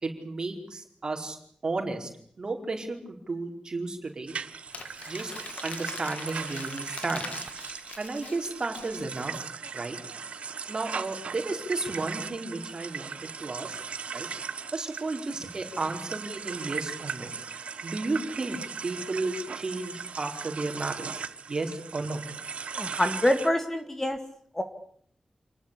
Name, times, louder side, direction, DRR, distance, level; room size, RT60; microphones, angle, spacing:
voice 1, 0.0-1.4 1.6-2.1 2.4-4.3 5.1-5.3 5.6-7.3 8.0-9.4 9.7-10.0 10.7-13.8 14.1-14.3 14.7-17.3 17.8-21.1 21.5-22.2, right 3 dB, 40° right, 4 dB, 4.6 m, -33 dB
sound 1, 4.3-23.5, right 6 dB, 75° right, 1.3 m, -38 dB
Crumpling crinkling, 4.7-9.3, left 5 dB, 85° left, 2.5 m, -43 dB
voice 2, 22.7-24.2 24.5-24.6, left 1 dB, 15° left, 7 dB, 2.0 m, -26 dB
28.0 x 20.0 x 8.5 m, 0.64 s
wide cardioid pair, 160°, 2 cm